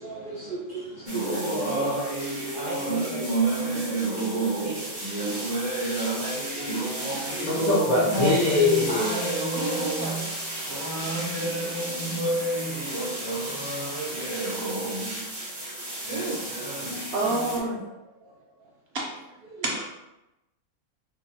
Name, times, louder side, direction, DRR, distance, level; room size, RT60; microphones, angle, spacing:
voice 1, 0.0-7.7 8.9-10.3 15.4-17.1 17.5-17.8 19.5-19.7, right 2 dB, 85° right, -5 dB, 0.4 m, -37 dB
sound 1, 1.1-17.6, right 2 dB, 25° right, 0.5 m, -29 dB
voice 2, 7.5-9.1 10.7-10.9 11.7-11.8 12.8-13.0 14.1-14.2, left 3 dB, 70° left, -6 dB, 0.4 m, -24 dB
voice 3, 17.1-17.9 18.2-18.3 18.9-19.0 19.6-19.8, right 2 dB, 55° right, -2 dB, 0.8 m, -27 dB
3.6 x 2.1 x 2.8 m, 0.93 s
omnidirectional pair, 1.5 m